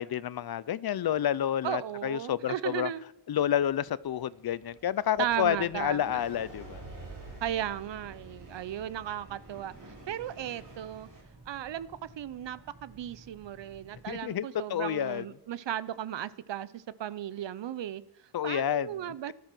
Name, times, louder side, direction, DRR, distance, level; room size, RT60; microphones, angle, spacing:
voice 1, 0.0-2.9 3.3-6.8 14.1-15.2 18.3-18.9, left 10 dB, 60° left, 0.6 m, -29 dB
voice 2, 1.6-3.1 5.2-6.2 7.4-11.1 11.5-19.3, right 11 dB, 85° right, 0.7 m, -36 dB
sound 1, 3.9-11.2, right 2 dB, 45° right, 5.3 m, -49 dB
Boat Water vehicle, 5.1-14.2, right 3 dB, 70° right, 3.0 m, -55 dB
18.5 x 12.0 x 6.0 m
wide cardioid pair, 165°, 42 cm